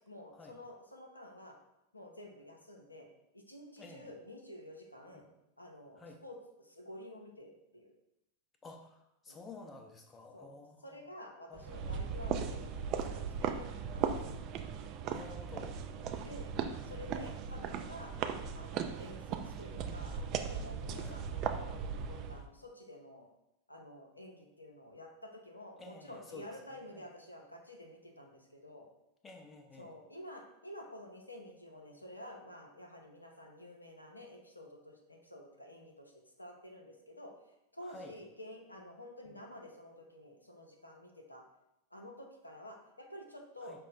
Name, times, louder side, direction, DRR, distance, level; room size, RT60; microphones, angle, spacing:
voice 1, 0.0-1.6 1.9-3.1 3.3-5.3 5.6-7.9 9.3-9.4 10.3-10.6 10.8-13.1 13.4-14.4 16.2-16.5 16.9-18.1 18.5-23.3 23.7-28.9 29.8-36.1 36.4-37.3 37.7-41.4 41.9-43.8, left 1 dB, 85° left, 1 dB, 0.5 m, -50 dB
voice 2, 3.8-4.1 5.1-5.2 6.0-6.2 8.6-11.0 11.5-12.0 15.0-15.8 21.0-21.2 25.8-27.0 29.2-29.9 37.8-38.1 39.3-39.4 43.6-43.8, left 3 dB, 15° left, 2 dB, 0.6 m, -52 dB
sound 1, 11.6-22.5, right 7 dB, 40° right, 0.3 m, -38 dB
5.3 x 2.1 x 3.9 m, 0.85 s
figure-of-eight pair, 90°, 0 cm